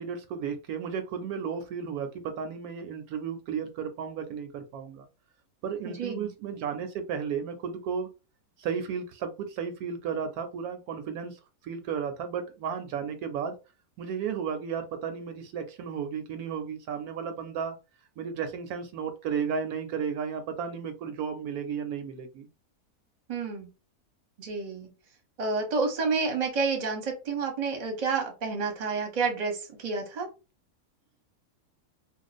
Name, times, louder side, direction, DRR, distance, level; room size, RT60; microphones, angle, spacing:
voice 1, 0.0-5.1 5.6-8.1 8.6-13.5 14.0-17.8 18.2-22.5, right 7 dB, 75° right, 7 dB, 1.0 m, -34 dB
voice 2, 5.8-6.3 23.3-23.7 24.4-24.9 25.4-30.3, right 4 dB, 35° right, 3 dB, 0.7 m, -29 dB
2.5 x 2.1 x 4.0 m, 0.30 s
omnidirectional pair, 1.6 m